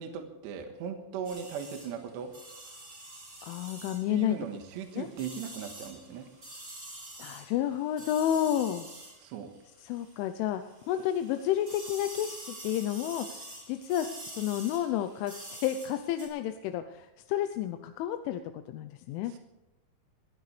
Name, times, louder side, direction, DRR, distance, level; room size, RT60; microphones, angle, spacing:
voice 1, 0.0-2.3 4.1-6.3 9.2-9.5 19.3-19.4, right 7 dB, 70° right, 5 dB, 3.4 m, -38 dB
sound 1, 1.2-10.3 10.6-16.3, right 1 dB, 20° right, 4.6 m, -47 dB
voice 2, 3.4-4.4 4.9-5.1 7.2-8.9 9.8-10.6 10.9-13.4 13.7-18.4 18.7-19.3, left 11 dB, 85° left, 8 dB, 3.2 m, -31 dB
23.0 x 16.0 x 3.3 m, 1.0 s
omnidirectional pair, 5.4 m